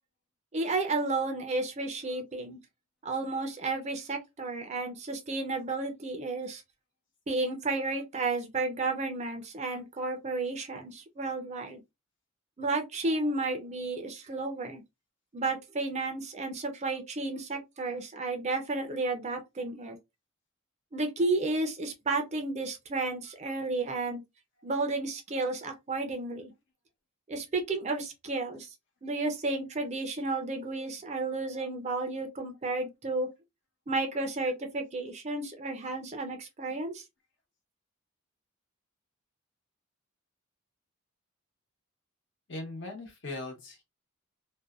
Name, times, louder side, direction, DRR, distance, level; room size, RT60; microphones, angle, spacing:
voice 1, 0.5-2.6 3.0-6.6 7.3-11.8 12.6-14.8 15.3-20.0 20.9-24.2 24.6-26.5 27.3-28.7 29.0-33.3 33.9-37.0, right 3 dB, 30° right, 0.5 m, -32 dB
voice 2, 42.5-43.8, left 2 dB, 60° left, 1.0 m, -39 dB
2.6 x 2.2 x 2.3 m
head